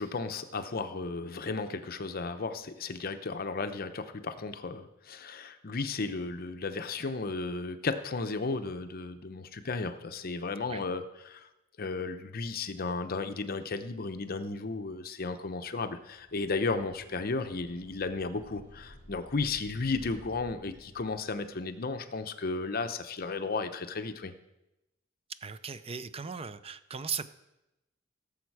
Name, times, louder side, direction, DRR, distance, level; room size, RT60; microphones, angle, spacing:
voice 1, 0.0-11.5 11.8-24.3, left 3 dB, 50° left, 9 dB, 0.8 m, -34 dB
sound 1, 16.1-21.6, left 1 dB, 60° right, 3.6 m, -53 dB
voice 2, 25.4-27.3, right 6 dB, 30° right, 13 dB, 0.5 m, -37 dB
16.5 x 7.2 x 4.8 m, 0.94 s
head